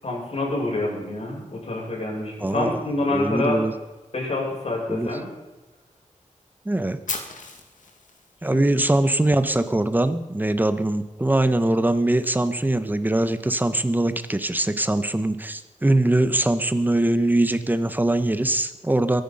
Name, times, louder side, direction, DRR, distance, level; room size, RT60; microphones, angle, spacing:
voice 1, 0.0-3.6 4.1-5.3 8.5-8.6, left 2 dB, 50° left, -3 dB, 6.9 m, -27 dB
voice 2, 2.4-2.8 3.1-3.7 4.9-5.1 6.6-7.0 8.4-19.2, right 1 dB, 15° right, 11 dB, 1.0 m, -22 dB
Fire, 7.1-9.1, left 4 dB, 80° left, 2.4 m, -35 dB
23.0 x 10.5 x 5.6 m, 1.1 s
wide cardioid pair, 130°, 13 cm